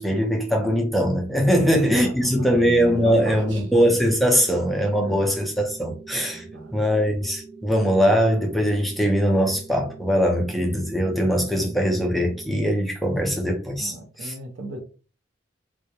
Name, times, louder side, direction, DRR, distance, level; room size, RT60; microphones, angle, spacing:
voice 1, 0.0-6.4 6.7-13.9 14.2-14.3, equal, ahead, 0.4 m, -21 dB
voice 2, 1.4-3.7 5.0-5.3 6.3-6.7 13.8-14.8, right 1 dB, 70° right, 0.6 m, -37 dB
sound 1, 2.7-12.7, right 4 dB, 45° right, 0.9 m, -44 dB
2.2 x 2.0 x 2.8 m
head